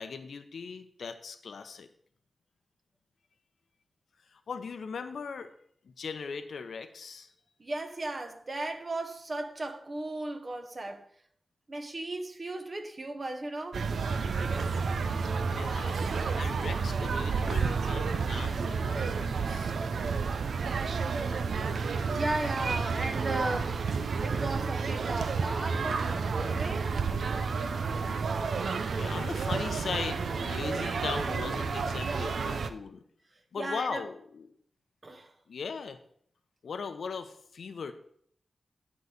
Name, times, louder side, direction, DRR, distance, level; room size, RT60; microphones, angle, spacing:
voice 1, 0.0-1.9 4.3-5.5 5.8-7.3 15.5-16.0 16.3-19.7 28.9-33.0 33.5-34.5 35.5-36.0 36.6-37.9, left 5 dB, 85° left, 0.8 m, -39 dB
voice 2, 7.6-11.1 11.7-13.8 22.1-23.8 24.2-26.9 33.6-34.0 35.0-35.3, right 2 dB, 45° right, 1.2 m, -36 dB
sound 1, 13.7-32.7, right 5 dB, 85° right, 0.6 m, -30 dB
10.5 x 4.1 x 6.5 m
cardioid pair, 65°, 0 cm